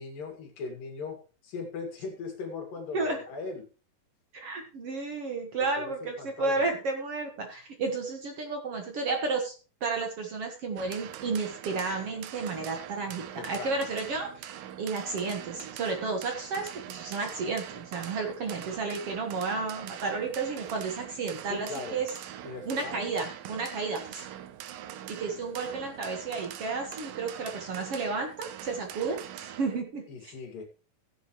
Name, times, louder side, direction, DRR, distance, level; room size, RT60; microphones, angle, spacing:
voice 1, 0.0-3.7 5.8-6.6 13.3-13.8 21.5-22.0 22.4-23.1 30.1-30.6, left 4 dB, 75° left, 3 dB, 4.1 m, -39 dB
voice 2, 4.3-9.5 9.8-22.1 22.7-24.3 25.1-30.3, right 4 dB, 50° right, 4 dB, 2.2 m, -32 dB
sound 1, 10.8-29.8, right 11 dB, 80° right, 2.6 m, -43 dB
16.5 x 8.9 x 3.1 m, 0.34 s
omnidirectional pair, 4.0 m